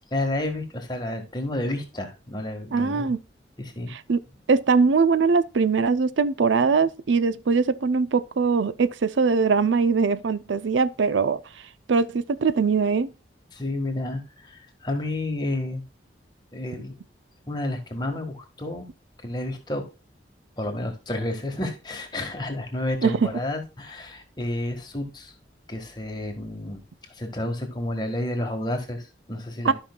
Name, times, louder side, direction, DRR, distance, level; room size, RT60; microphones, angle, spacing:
voice 1, 0.1-3.1 3.6-3.9 13.5-15.8 16.5-17.0 17.5-18.9 19.2-19.8 20.6-25.3 25.7-26.8 27.2-29.7, left 1 dB, 25° left, 1.6 m, -30 dB
voice 2, 2.7-3.2 3.9-4.2 4.5-11.4 11.9-13.1 23.0-23.2 29.6-29.7, right 5 dB, 90° right, 0.5 m, -21 dB
13.0 x 5.5 x 2.3 m
head